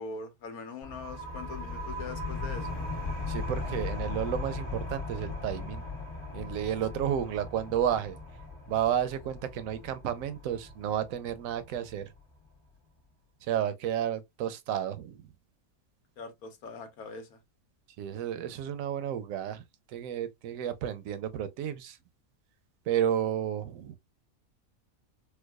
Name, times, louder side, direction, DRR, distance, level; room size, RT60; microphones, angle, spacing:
voice 1, 0.0-2.7 16.2-17.4, left 4 dB, 90° left, 1.3 m, -42 dB
sound 1, 0.8-12.2, left 3 dB, 40° left, 1.3 m, -38 dB
voice 2, 3.3-5.8 6.3-8.2 8.7-12.0 13.4-15.3 18.0-19.6 19.9-22.0 22.9-24.0, right 10 dB, 75° right, 1.0 m, -31 dB
4.6 x 2.2 x 2.2 m
omnidirectional pair, 1.5 m